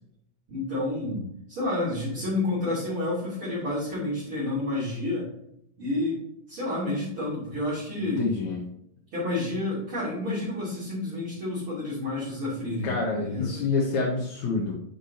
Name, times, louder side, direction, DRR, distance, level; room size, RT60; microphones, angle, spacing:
voice 1, 0.5-1.2 1.5-5.3 5.8-6.2 6.5-8.3 9.1-13.6, left 2 dB, 40° right, -9 dB, 3.6 m, -30 dB
voice 2, 8.0-8.6 12.8-14.8, left 3 dB, 70° left, -2 dB, 2.4 m, -27 dB
10.0 x 6.1 x 2.8 m, 0.77 s
omnidirectional pair, 3.7 m